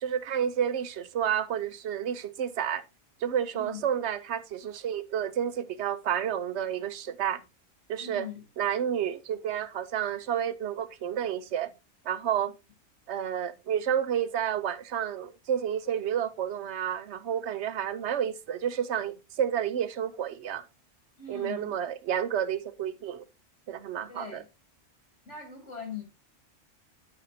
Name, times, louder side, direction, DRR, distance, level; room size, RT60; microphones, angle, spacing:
voice 1, 0.0-2.8 3.2-7.4 7.9-8.3 8.6-11.7 12.1-12.5 13.1-20.6 21.3-23.2 23.7-24.4, right 9 dB, 70° right, 0.9 m, -30 dB
voice 2, 3.5-3.9 8.0-8.5 21.2-21.8 24.1-24.5 25.3-26.0, left 6 dB, 70° left, 3.6 m, -41 dB
12.5 x 5.3 x 2.6 m
omnidirectional pair, 1.3 m